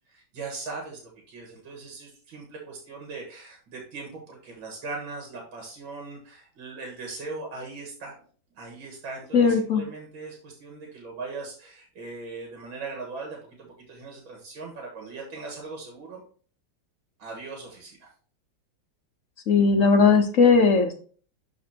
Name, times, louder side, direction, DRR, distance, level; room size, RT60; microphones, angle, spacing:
voice 1, 0.1-8.1 8.6-16.2 17.2-18.1, right 3 dB, 85° right, 0 dB, 2.2 m, -39 dB
voice 2, 9.3-9.8 19.5-20.9, left 5 dB, 60° left, 7 dB, 0.9 m, -18 dB
12.0 x 4.2 x 2.8 m, 0.43 s
omnidirectional pair, 2.1 m